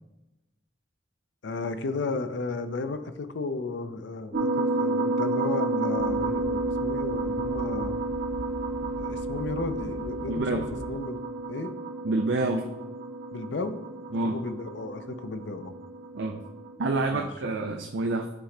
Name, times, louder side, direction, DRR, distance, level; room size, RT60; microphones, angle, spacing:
voice 1, 1.4-8.0 9.0-11.2 11.5-11.7 13.3-13.8 14.2-15.7 17.1-17.3, left 3 dB, 80° left, 9 dB, 0.5 m, -34 dB
sound 1, 4.3-16.7, right 2 dB, 55° right, 0.8 m, -31 dB
sound 2, 6.0-11.0, right 2 dB, 30° right, 0.3 m, -42 dB
voice 2, 10.3-10.6 12.0-12.7 14.1-14.4 16.1-16.4 16.8-18.3, right 2 dB, 85° right, 4 dB, 0.5 m, -27 dB
11.0 x 3.7 x 3.3 m, 1.0 s
head